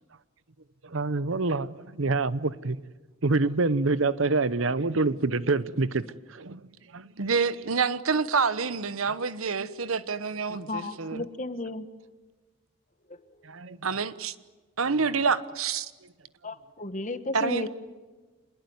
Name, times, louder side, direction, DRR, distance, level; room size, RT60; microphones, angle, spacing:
voice 1, 0.8-2.8 3.2-7.1 9.6-9.7 10.5-10.6 13.4-13.9 14.9-15.0, right 3 dB, 65° right, 0.9 m, -27 dB
voice 2, 7.2-11.2 13.8-14.3 14.8-15.9 17.3-17.7, right 5 dB, 85° right, 1.2 m, -27 dB
voice 3, 10.7-11.9 13.1-13.2 16.4-17.7, left 2 dB, 35° left, 1.4 m, -33 dB
26.5 x 21.0 x 9.6 m
head